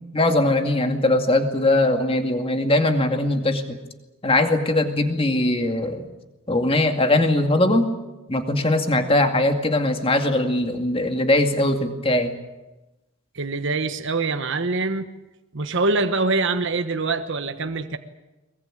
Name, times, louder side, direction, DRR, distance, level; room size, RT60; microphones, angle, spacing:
voice 1, 0.1-3.8 4.2-6.0 6.5-7.9 8.3-12.3, left 1 dB, 25° left, 5 dB, 2.3 m, -20 dB
voice 2, 13.3-15.1 15.5-18.0, right 3 dB, 60° right, 9 dB, 1.2 m, -24 dB
22.5 x 21.5 x 9.1 m, 1.1 s
head